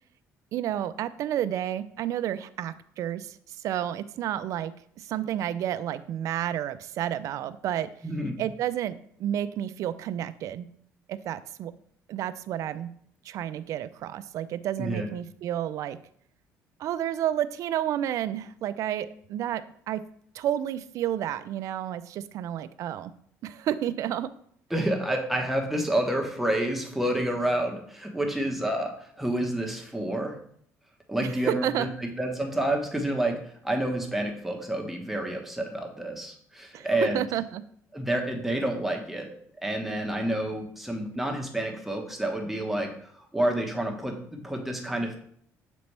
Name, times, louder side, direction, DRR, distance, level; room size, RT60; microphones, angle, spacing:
voice 1, 0.5-7.9 8.4-10.7 11.1-11.7 12.1-12.9 13.2-16.0 16.8-20.0 20.3-23.1 23.4-24.3 31.2-31.9 36.7-37.6, right 11 dB, 65° right, 14 dB, 0.4 m, -31 dB
voice 2, 8.0-8.4 14.8-15.1 24.7-30.3 31.1-37.3 37.9-39.3 39.6-45.2, right 1 dB, 5° right, 1 dB, 1.2 m, -29 dB
6.9 x 4.1 x 3.3 m, 0.64 s
cardioid pair, 100°, 6 cm